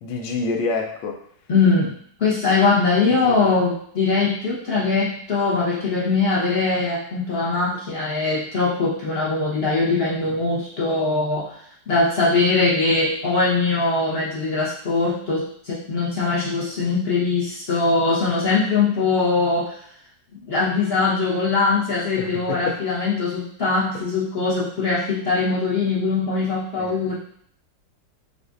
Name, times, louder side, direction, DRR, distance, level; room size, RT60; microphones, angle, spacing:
voice 1, 0.0-1.2 3.2-3.5 22.2-22.8 26.8-27.1, left 4 dB, 80° left, 2 dB, 1.3 m, -28 dB
voice 2, 1.5-1.9 2.2-11.5 11.9-19.8 20.5-27.1, left 3 dB, 40° left, -6 dB, 1.0 m, -21 dB
6.0 x 2.6 x 2.5 m, 0.63 s
omnidirectional pair, 2.0 m